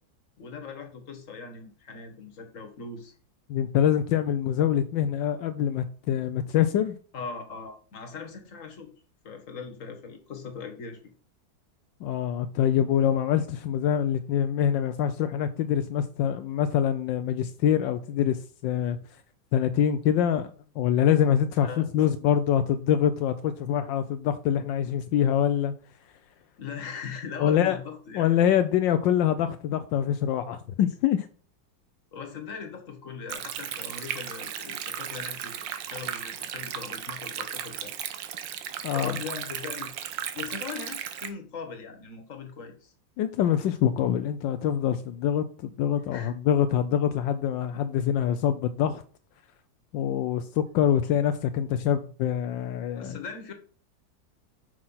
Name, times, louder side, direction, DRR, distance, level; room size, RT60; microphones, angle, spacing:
voice 1, 0.4-3.1 7.1-8.9 9.2-11.0 21.6-22.1 26.6-28.3 32.1-37.9 38.9-39.9 40.3-42.9 46.1-46.3 53.0-53.5, left 5 dB, 45° left, 1.8 m, -40 dB
voice 2, 3.5-7.0 12.0-19.0 19.5-25.7 27.4-27.8 28.1-31.3 38.8-39.2 43.2-49.0 49.9-53.2, left 9 dB, 80° left, 1.3 m, -25 dB
Stream, 33.3-41.3, right 10 dB, 75° right, 1.5 m, -35 dB
6.4 x 6.1 x 5.6 m
omnidirectional pair, 2.0 m